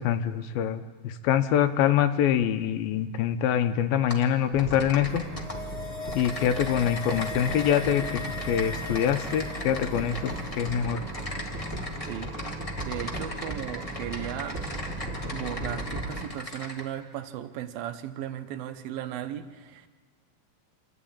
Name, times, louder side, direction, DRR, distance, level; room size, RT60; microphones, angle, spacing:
voice 1, 0.0-5.2 6.1-11.0, left 9 dB, 80° left, 9 dB, 2.7 m, -25 dB
Typing, 4.1-4.3 4.6-5.6 6.0-16.8, left 1 dB, 60° left, 0.3 m, -39 dB
sound 1, 4.5-16.2, right 1 dB, 20° right, 2.4 m, -37 dB
sound 2, 5.2-10.6 10.9-11.0, left 4 dB, 40° left, 1.6 m, -39 dB
voice 2, 12.1-14.6 15.3-19.9, right 11 dB, 80° right, 9 dB, 2.7 m, -36 dB
27.0 x 12.0 x 8.8 m, 1.5 s
omnidirectional pair, 4.2 m